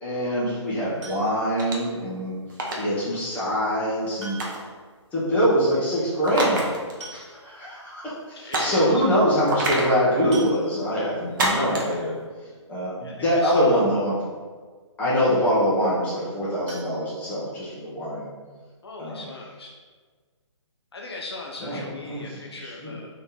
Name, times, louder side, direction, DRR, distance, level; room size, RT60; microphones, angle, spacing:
voice 1, 0.0-2.4 2.7-4.5 5.1-6.7 7.1-12.2 12.7-14.2 15.0-18.3 19.0-19.3 21.6-22.9, equal, 10° left, -9 dB, 1.2 m, -24 dB
sound 1, 1.0-1.6 3.1-3.2 4.2-4.8 5.1-5.2 5.5-5.6 6.6-6.7 7.0-7.7 8.3-8.4 8.7-8.9 10.3-11.1 16.6-17.8 18.2-18.3 18.7-18.8 19.2-19.3, right 3 dB, 65° right, 1.5 m, -43 dB
sound 2, 1.6-1.9 2.5-2.8 4.4-4.7 6.2-6.9 7.2-7.3 8.5-8.8 9.5-10.0 11.4-11.9, right 1 dB, 40° right, 0.8 m, -26 dB
voice 2, 8.4-9.1 13.0-13.8 18.8-19.8 20.9-23.1, left 2 dB, 55° left, -1 dB, 0.6 m, -38 dB
4.0 x 3.2 x 3.8 m, 1.5 s
figure-of-eight pair, 135°, 16 cm